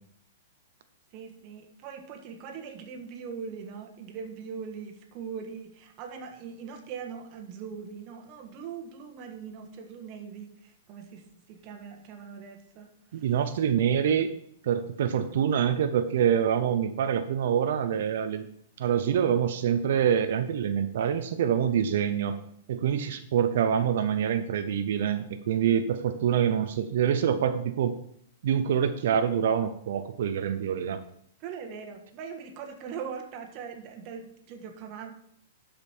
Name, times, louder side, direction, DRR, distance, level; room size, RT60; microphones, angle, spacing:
voice 1, 1.1-13.2 31.4-35.1, right 6 dB, 35° right, 4 dB, 1.5 m, -41 dB
voice 2, 13.1-14.3 14.6-18.5 18.8-22.4 22.7-28.0 28.4-31.0, right 8 dB, 65° right, 9 dB, 0.7 m, -26 dB
12.0 x 5.2 x 4.5 m, 0.69 s
hypercardioid pair, 150°, 0 cm